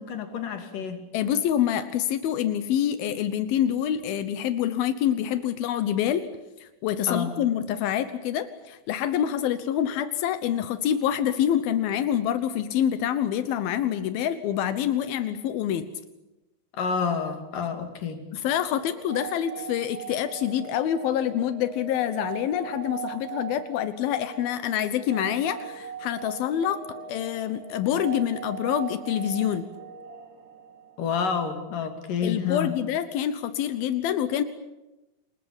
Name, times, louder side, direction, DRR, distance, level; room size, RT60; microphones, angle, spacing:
voice 1, 0.0-1.0 7.1-7.3 16.7-18.2 31.0-32.7, left 6 dB, 65° left, 6 dB, 4.1 m, -29 dB
voice 2, 1.1-6.3 6.6-15.9 18.3-26.8 27.1-29.7 32.2-34.4, left 10 dB, 85° left, 11 dB, 2.9 m, -26 dB
sound 1, 18.7-31.5, right 7 dB, 55° right, 4.8 m, -40 dB
27.5 x 20.5 x 8.9 m, 1.0 s
omnidirectional pair, 4.2 m